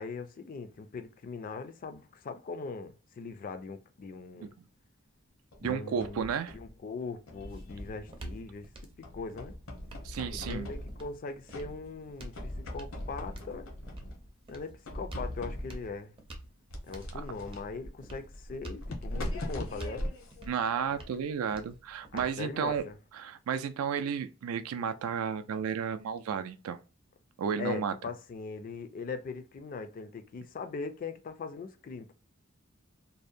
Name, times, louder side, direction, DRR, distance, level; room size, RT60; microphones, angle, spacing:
voice 1, 0.0-4.5 5.6-9.5 10.3-13.7 14.5-16.1 16.9-20.1 22.1-23.0 27.6-32.1, left 4 dB, 40° left, 0.3 m, -40 dB
sound 1, 5.5-6.7 7.3-8.6 9.0-11.2 11.5-12.1 12.3-14.3 14.8-15.9 16.7-21.2, left 1 dB, 70° left, 0.7 m, -40 dB
voice 2, 5.6-6.6 10.0-10.7 17.1-17.2 20.5-22.8 23.1-26.8 27.4-27.9, right 7 dB, 85° right, 0.3 m, -32 dB
sound 2, 7.1-23.1, right 1 dB, 25° right, 0.5 m, -48 dB
2.6 x 2.0 x 2.4 m
head